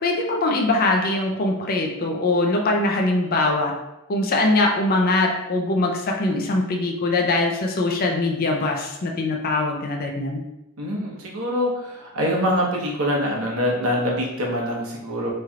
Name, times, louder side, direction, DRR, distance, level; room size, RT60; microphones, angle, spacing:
voice 1, 0.0-3.7 4.1-10.4, left 2 dB, 45° left, 1 dB, 0.5 m, -22 dB
voice 2, 10.8-15.3, equal, 80° right, -2 dB, 1.0 m, -24 dB
4.2 x 3.2 x 2.4 m, 0.92 s
head